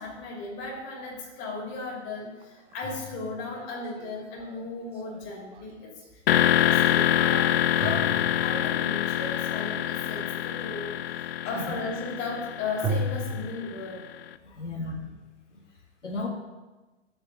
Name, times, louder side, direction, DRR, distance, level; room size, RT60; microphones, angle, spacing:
voice 1, 0.0-5.9 6.3-14.0 14.5-14.6, left 3 dB, 35° left, -1 dB, 2.9 m, -36 dB
sound 1, 1.4-1.5 2.4-6.1 7.8-8.9 12.8-13.5, right 1 dB, 15° right, 0.8 m, -35 dB
sound 2, 6.3-14.1, left 11 dB, 55° left, 0.6 m, -26 dB
voice 2, 11.4-11.8 14.4-15.1 15.5-15.6 16.0-16.3, left 2 dB, 90° left, 0 dB, 1.8 m, -35 dB
6.7 x 6.7 x 7.1 m, 1.2 s
figure-of-eight pair, 120°, 35 cm